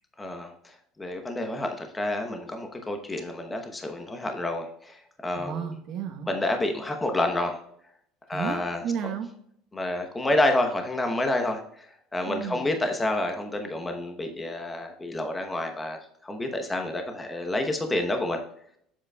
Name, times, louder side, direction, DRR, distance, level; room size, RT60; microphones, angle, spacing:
voice 1, 0.2-0.7 1.0-5.7 6.3-7.6 8.3-8.8 9.7-11.9 12.1-18.4, left 1 dB, 15° left, 4 dB, 0.9 m, -29 dB
voice 2, 5.3-6.3 8.3-9.3 12.3-12.7, right 7 dB, 55° right, 5 dB, 1.1 m, -33 dB
7.4 x 7.4 x 2.3 m, 0.70 s
cardioid pair, 135°, 0 cm